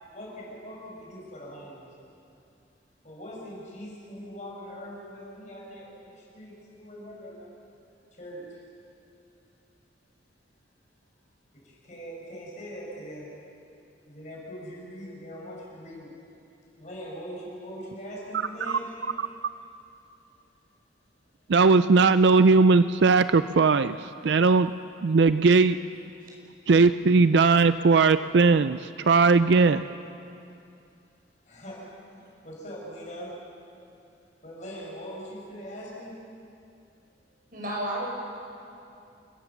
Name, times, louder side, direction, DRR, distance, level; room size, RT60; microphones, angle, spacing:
voice 1, 0.1-1.9 3.0-7.5 8.1-8.6 8.9-9.0 11.5-13.4 14.1-16.1 16.8-18.9 31.4-33.5 34.4-36.2, equal, 40° left, -3 dB, 6.3 m, -41 dB
voice 2, 21.5-24.7 25.0-25.8 26.7-29.8, right 4 dB, 65° right, 13 dB, 0.4 m, -19 dB
voice 3, 37.5-38.1, right 1 dB, 50° right, -3 dB, 6.5 m, -31 dB
29.5 x 14.5 x 7.2 m, 2.6 s
head